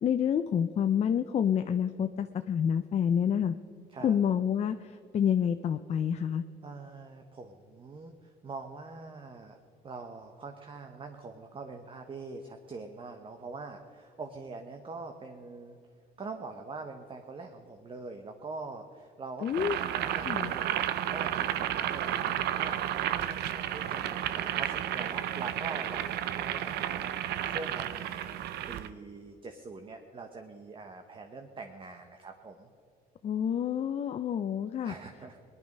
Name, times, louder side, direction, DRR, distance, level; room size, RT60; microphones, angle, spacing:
voice 1, 0.0-3.5 4.0-6.4 19.4-19.8 20.2-20.5 33.2-34.9, left 8 dB, 40° left, 9 dB, 0.5 m, -28 dB
voice 2, 6.6-9.6 9.8-15.8 16.2-32.7 34.8-35.4, right 3 dB, 30° right, 5 dB, 1.0 m, -44 dB
Boiling, 19.5-28.9, right 11 dB, 75° right, 0.6 m, -32 dB
19.5 x 11.0 x 5.3 m, 2.6 s
cardioid pair, 110°, 17 cm